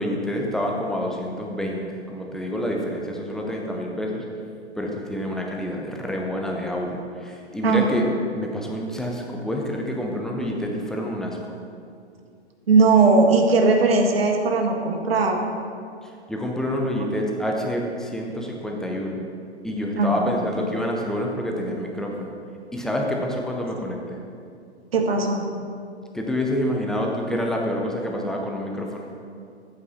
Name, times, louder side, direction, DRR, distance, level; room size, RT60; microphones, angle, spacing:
voice 1, 0.0-4.2 4.8-8.1 8.3-11.4 16.0-19.2 19.6-22.3 22.7-24.2 26.1-29.1, equal, ahead, 0 dB, 0.6 m, -27 dB
voice 2, 7.6-8.0 12.7-15.4 20.0-20.3 24.9-25.5, right 3 dB, 60° right, 3 dB, 1.7 m, -18 dB
13.5 x 8.6 x 4.3 m, 2.3 s
figure-of-eight pair, 125°, 34 cm